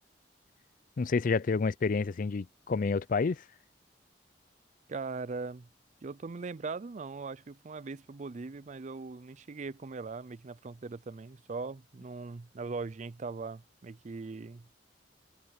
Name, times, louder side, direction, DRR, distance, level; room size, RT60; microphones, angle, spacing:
voice 1, 1.0-3.4, left 4 dB, 50° left, 0.4 m, -29 dB
voice 2, 4.9-5.7 6.0-14.7, right 4 dB, 40° right, 0.5 m, -40 dB
head